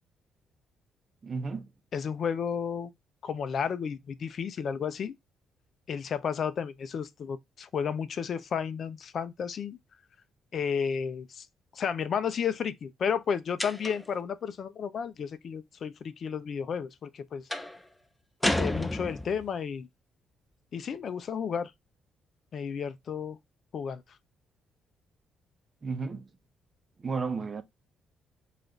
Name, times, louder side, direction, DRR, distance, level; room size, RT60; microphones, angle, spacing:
voice 1, 1.2-1.7 25.8-26.3 27.0-27.6, right 4 dB, 35° right, 0.7 m, -33 dB
voice 2, 1.9-2.9 3.2-5.1 5.9-9.8 10.5-11.5 11.7-17.4 18.4-19.9 20.7-21.7 22.5-23.4 23.7-24.0, left 7 dB, 55° left, 0.5 m, -32 dB
sound 1, 13.6-14.2 17.5-17.8 18.4-19.5, left 1 dB, 10° left, 0.6 m, -30 dB
4.9 x 2.5 x 3.7 m
cardioid pair, 90°, 0 cm